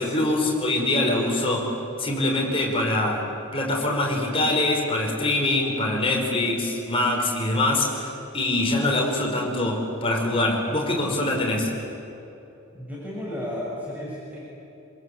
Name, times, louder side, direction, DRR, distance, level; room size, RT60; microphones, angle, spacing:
voice 1, 0.0-11.7, left 1 dB, 25° left, 0 dB, 5.4 m, -24 dB
voice 2, 12.7-14.5, left 1 dB, 10° right, -6 dB, 7.1 m, -33 dB
27.0 x 26.5 x 8.3 m, 3.0 s
head